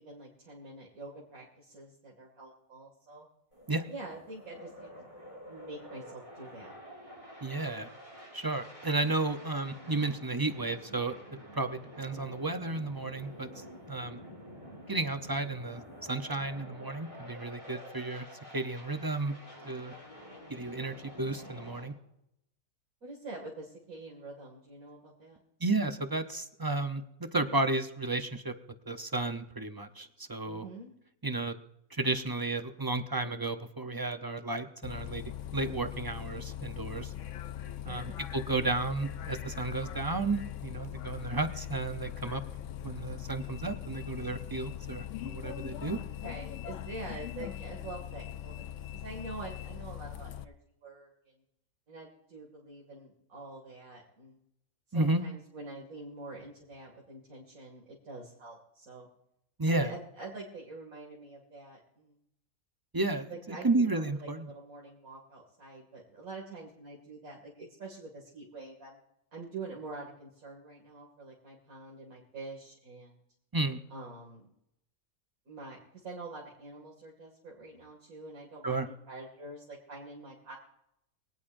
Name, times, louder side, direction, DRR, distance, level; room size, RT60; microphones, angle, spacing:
voice 1, 0.0-3.3 3.9-5.1 5.5-6.7 23.0-25.4 30.4-30.9 37.9-38.2 45.8-48.7 49.0-50.5 50.8-51.1 51.9-54.4 54.9-59.1 59.7-62.2 63.3-69.0 69.3-73.2 73.9-74.5 75.5-75.8 76.0-80.6, right 3 dB, 70° right, -3 dB, 2.8 m, -46 dB
sound 1, 3.5-21.9, equal, 20° left, 7.3 m, -49 dB
voice 2, 7.4-7.9 8.3-11.1 11.5-14.2 14.9-18.3 18.5-19.3 19.6-19.9 20.5-21.9 25.6-28.5 28.9-30.7 31.2-31.6 31.9-37.1 37.9-42.4 42.8-46.0 54.9-55.2 59.6-59.9 62.9-64.5 73.5-73.8 78.6-78.9, right 2 dB, 25° right, 8 dB, 0.5 m, -32 dB
Bus, 34.8-50.4, left 11 dB, 65° left, 0.9 m, -41 dB
23.0 x 17.5 x 2.6 m, 0.80 s
omnidirectional pair, 1.5 m